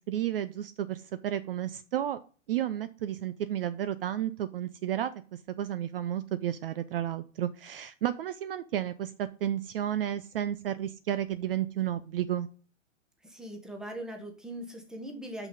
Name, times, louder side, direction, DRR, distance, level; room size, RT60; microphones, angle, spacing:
voice 1, 0.0-2.2 2.5-5.1 5.6-12.5, right 11 dB, 50° right, 14 dB, 0.5 m, -32 dB
voice 2, 13.2-15.5, right 1 dB, ahead, 4 dB, 0.9 m, -40 dB
5.9 x 5.8 x 5.1 m, 0.39 s
hypercardioid pair, 150°, 38 cm